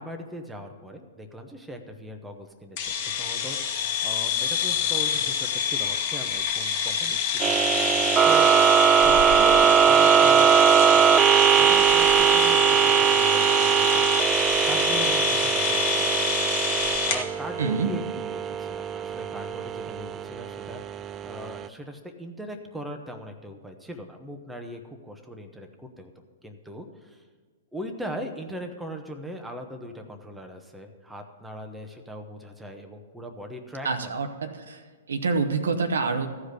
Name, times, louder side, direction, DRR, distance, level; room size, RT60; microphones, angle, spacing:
voice 1, 0.0-7.5 8.2-8.5 9.0-10.6 10.9-11.1 11.6-14.0 14.7-16.1 17.1-21.0 21.2-26.1 26.4-27.2 27.7-34.2, right 1 dB, 5° right, 4 dB, 1.1 m, -39 dB
sound 1, 2.8-17.2, left 8 dB, 50° left, 1.4 m, -27 dB
sound 2, 7.4-21.7, right 8 dB, 25° right, 0.3 m, -21 dB
voice 2, 17.6-17.9 33.8-34.8 35.1-36.3, right 4 dB, 80° right, 6 dB, 1.0 m, -26 dB
14.5 x 4.9 x 8.1 m, 1.5 s
hypercardioid pair, 115°, 0 cm